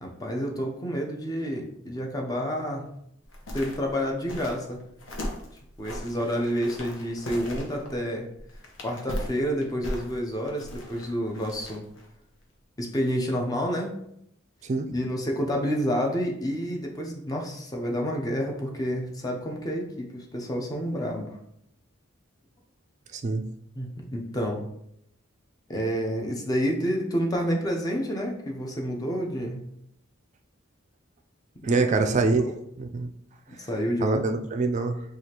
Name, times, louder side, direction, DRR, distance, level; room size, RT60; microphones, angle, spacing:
voice 1, 0.0-2.8 3.5-4.8 5.8-8.3 8.8-11.8 12.8-14.0 14.9-21.3 23.7-24.6 25.7-29.6 31.6-31.9 32.4-32.5 33.7-34.2, equal, 20° left, 1 dB, 0.5 m, -29 dB
sound 1, 3.2-12.1 12.4-12.5, left 1 dB, 70° left, 0.8 m, -38 dB
voice 2, 23.1-23.5 31.6-32.5 32.8-33.1 34.0-35.0, right 3 dB, 35° right, 6 dB, 0.3 m, -25 dB
4.8 x 2.4 x 2.9 m, 0.76 s
head